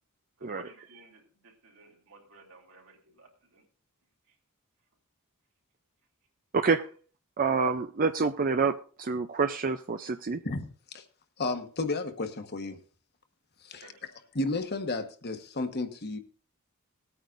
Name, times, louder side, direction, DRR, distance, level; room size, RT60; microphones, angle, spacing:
voice 1, 0.4-3.7 4.3-4.4 13.7-14.0, right 2 dB, 65° right, 3.4 m, -54 dB
voice 2, 6.5-6.8 7.4-10.4, right 4 dB, 40° right, 0.5 m, -27 dB
voice 3, 11.4-12.8 13.6-13.8 14.3-16.2, left 2 dB, 45° left, 1.4 m, -32 dB
19.0 x 9.2 x 2.6 m
head